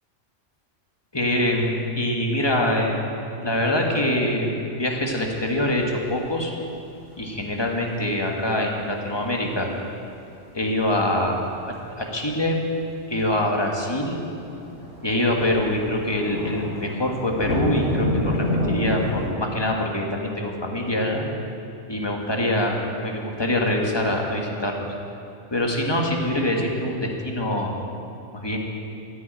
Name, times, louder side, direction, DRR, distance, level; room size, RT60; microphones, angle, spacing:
voice 1, 1.1-3.1 3.4-6.5 7.2-9.7 10.5-11.4 11.7-12.6 13.1-14.2 15.0-21.2 21.9-24.8 25.5-27.7 28.3-28.6, left 1 dB, 20° left, 0 dB, 1.8 m, -24 dB
sound 1, 5.4-6.0 6.3-6.6 7.0-7.2 8.8-8.9 9.2-9.6 11.6-11.7 12.0-12.1 12.4-12.5 12.7-12.8 14.3-19.3, equal, 85° left, 3.6 m, -28 dB
14.0 x 9.3 x 9.1 m, 2.7 s
omnidirectional pair, 1.2 m